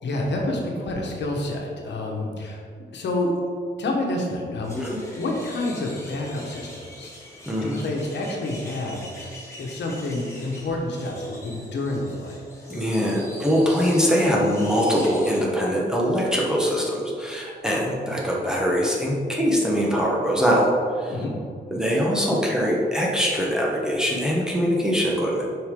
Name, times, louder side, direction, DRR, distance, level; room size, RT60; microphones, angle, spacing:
voice 1, 0.0-2.6 2.9-3.3 3.8-9.3 9.6-12.4 21.1-21.4, left 2 dB, 75° left, 0 dB, 1.3 m, -29 dB
sound 1, 4.6-15.4, left 1 dB, 15° left, 1.4 m, -43 dB
voice 2, 4.7-5.0 7.5-7.8 12.7-21.2 21.7-25.5, equal, 5° right, -4 dB, 1.0 m, -22 dB
7.9 x 5.4 x 3.8 m, 2.2 s
wide cardioid pair, 160°, 18 cm